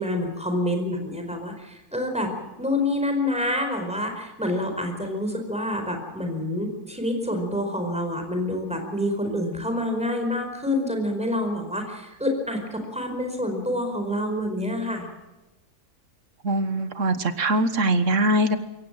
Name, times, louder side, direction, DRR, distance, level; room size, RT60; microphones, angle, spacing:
voice 1, 0.0-2.3 2.6-15.0, left 1 dB, 5° right, 4 dB, 4.8 m, -27 dB
voice 2, 16.4-18.6, right 1 dB, 55° right, 11 dB, 1.7 m, -22 dB
22.5 x 17.5 x 7.5 m, 1.1 s
omnidirectional pair, 1.6 m